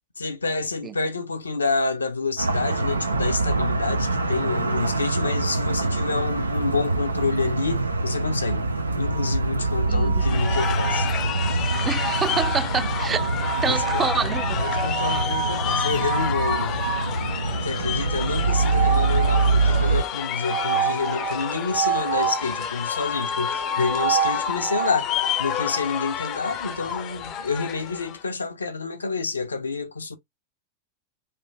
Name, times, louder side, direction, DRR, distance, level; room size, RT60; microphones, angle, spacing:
voice 1, 0.2-8.7 9.0-11.1 13.6-14.0 14.6-16.8 17.6-30.2, left 4 dB, 75° left, 0.6 m, -28 dB
sound 1, 2.4-20.0, right 3 dB, 80° right, 0.5 m, -25 dB
sound 2, 9.1-17.2 18.4-19.7 20.4-22.4 23.6-25.0, right 11 dB, 60° right, 1.4 m, -30 dB
voice 2, 9.9-10.3 11.8-13.3 13.6-14.4 15.1-15.3, right 6 dB, 20° right, 0.4 m, -27 dB
sound 3, 10.2-28.2, left 9 dB, 35° left, 0.5 m, -30 dB
3.3 x 2.5 x 3.3 m
figure-of-eight pair, 90°, 0 cm